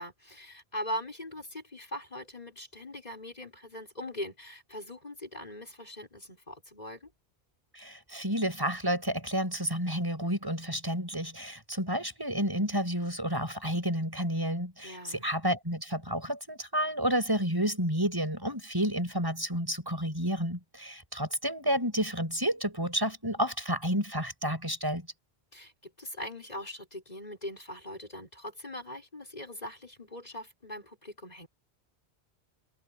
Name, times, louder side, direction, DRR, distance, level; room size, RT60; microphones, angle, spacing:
voice 1, 0.0-7.1 14.8-15.3 25.5-31.5, left 1 dB, 40° left, 6.4 m, -41 dB
voice 2, 7.7-25.1, equal, 20° right, 6.9 m, -30 dB
omnidirectional pair, 1.1 m